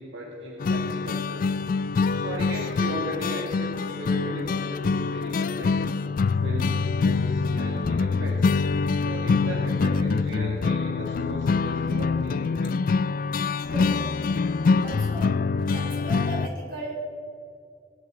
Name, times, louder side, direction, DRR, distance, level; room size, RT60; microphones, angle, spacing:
voice 1, 0.0-1.6 2.1-5.9 6.4-8.5 9.0-12.8, right 1 dB, 70° right, -3 dB, 1.9 m, -37 dB
sound 1, 0.6-16.5, left 4 dB, 45° left, 0.3 m, -25 dB
voice 2, 13.6-14.2 14.8-17.0, right 2 dB, 50° right, -4 dB, 4.4 m, -36 dB
19.0 x 11.0 x 4.4 m, 2.4 s
head